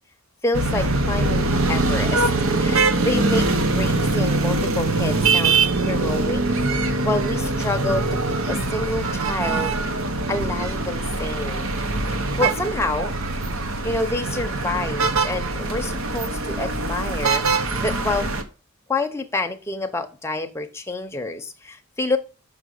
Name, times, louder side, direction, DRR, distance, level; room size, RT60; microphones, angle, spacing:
voice 1, 0.4-2.3 2.6-6.4 7.0-9.8 10.3-11.7 12.4-13.1 13.8-17.4 17.8-18.3 18.9-22.2, left 2 dB, 10° left, 0.7 m, -28 dB
sound 1, 0.5-18.4, right 3 dB, 65° right, 1.0 m, -23 dB
6.1 x 5.1 x 6.5 m
head